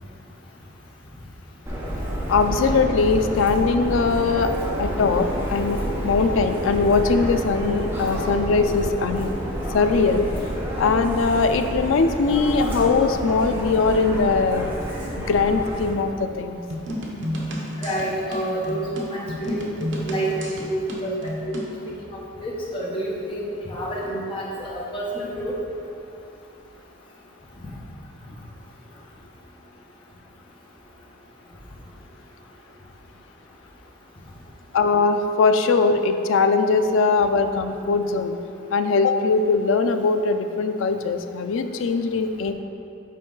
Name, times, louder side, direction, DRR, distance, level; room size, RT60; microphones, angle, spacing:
Subway metro underground, 1.7-15.9, equal, 10° right, 1.0 m, -29 dB
voice 1, 2.3-4.5 4.8-5.8 6.0-9.3 9.7-10.3 10.8-14.7 15.2-16.6 34.7-38.4 38.7-42.5, left 4 dB, 85° left, 8 dB, 0.4 m, -21 dB
sound 1, 16.7-21.8, equal, 70° right, 0.9 m, -31 dB
voice 2, 17.8-21.1 21.4-21.9 22.4-25.5, right 1 dB, 25° left, -6 dB, 1.1 m, -29 dB
7.4 x 4.6 x 3.8 m, 2.8 s
head